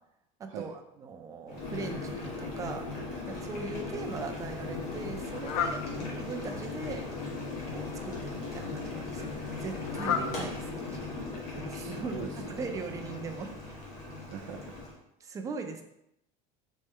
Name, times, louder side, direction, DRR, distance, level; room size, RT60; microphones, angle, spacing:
voice 1, 0.4-2.9 3.3-5.8 6.2-7.0 7.7-11.1 11.6-13.8 15.2-15.8, right 4 dB, 20° right, 5 dB, 0.4 m, -40 dB
Boiling, 1.5-15.0, left 3 dB, 60° left, 1.4 m, -38 dB
Fowl, 4.0-11.3, left 8 dB, 85° left, 0.5 m, -39 dB
voice 2, 9.9-10.5 11.7-12.7 14.3-14.8, right 7 dB, 75° right, 1 dB, 0.6 m, -42 dB
4.2 x 3.1 x 3.6 m, 0.80 s
cardioid pair, 155°, 17 cm